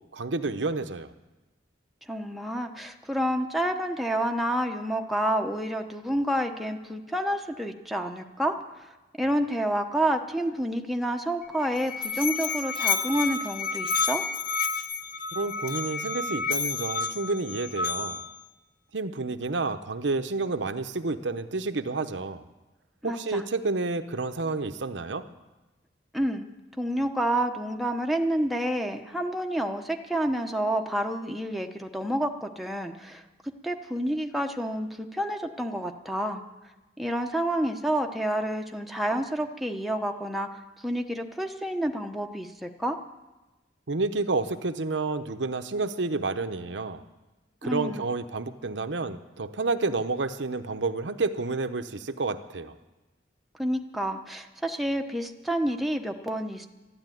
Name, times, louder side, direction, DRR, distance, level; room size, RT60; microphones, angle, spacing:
voice 1, 0.1-1.1 15.3-18.2 18.9-22.4 23.0-25.2 43.9-47.0 47.6-52.7, right 3 dB, 75° right, 8 dB, 0.9 m, -30 dB
voice 2, 2.1-8.6 9.2-14.2 23.0-23.4 26.1-26.5 26.8-33.2 33.6-36.4 37.0-40.5 40.8-43.0 47.6-48.1 53.6-56.7, right 1 dB, ahead, 3 dB, 1.0 m, -29 dB
Musical instrument, 11.4-18.4, left 5 dB, 50° left, 0.8 m, -30 dB
13.0 x 12.0 x 9.3 m, 1.1 s
head